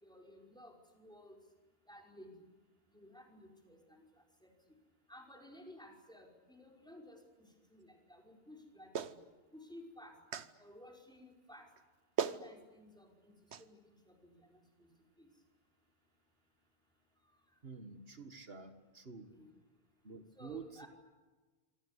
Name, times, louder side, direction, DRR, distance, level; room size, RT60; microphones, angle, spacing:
voice 1, 0.0-1.4 1.9-2.3 2.9-4.5 5.1-7.2 7.7-9.2 9.5-10.2 10.6-11.7 12.2-13.3 13.6-14.6 15.2-15.3 19.3-19.5 20.3-20.9, left 1 dB, 5° left, 0 dB, 5.3 m, -56 dB
Clapping, 8.9-9.2 10.3-10.5 11.8-11.9 12.2-12.4 13.5-13.6, right 7 dB, 85° right, 1.3 m, -36 dB
voice 2, 17.6-19.3 20.0-20.9, right 5 dB, 65° right, 8 dB, 2.1 m, -49 dB
27.0 x 25.0 x 8.4 m, 1.3 s
omnidirectional pair, 1.1 m